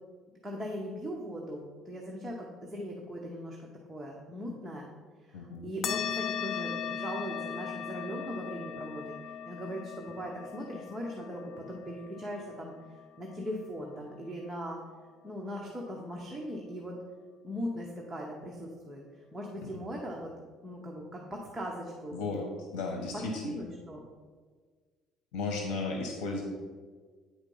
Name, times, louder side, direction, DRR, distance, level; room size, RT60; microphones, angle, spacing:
voice 1, 0.4-4.9 5.2-9.1 9.5-12.7 13.2-14.8 15.2-17.0 17.4-20.3 20.6-22.2 23.4-24.0, equal, 5° right, -3 dB, 0.9 m, -39 dB
voice 2, 5.3-5.7 22.1-23.5 25.3-26.4, left 3 dB, 90° left, 2 dB, 1.1 m, -34 dB
sound 1, 5.8-14.7, left 7 dB, 40° left, 0.4 m, -39 dB
9.0 x 4.4 x 5.4 m, 1.5 s
cardioid pair, 160°, 0 cm